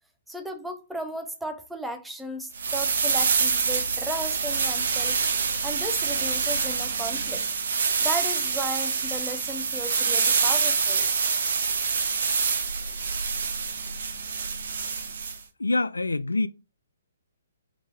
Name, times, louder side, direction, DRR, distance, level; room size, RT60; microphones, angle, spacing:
voice 1, 0.3-5.2 5.6-7.5 8.0-11.1, equal, 5° right, 0.6 m, -35 dB
Rustling Field of Dried Grass, 2.5-15.4, right 5 dB, 60° right, 0.7 m, -26 dB
voice 2, 15.6-16.5, left 2 dB, 80° left, 0.3 m, -25 dB
3.7 x 3.5 x 3.2 m
figure-of-eight pair, 125°, 0 cm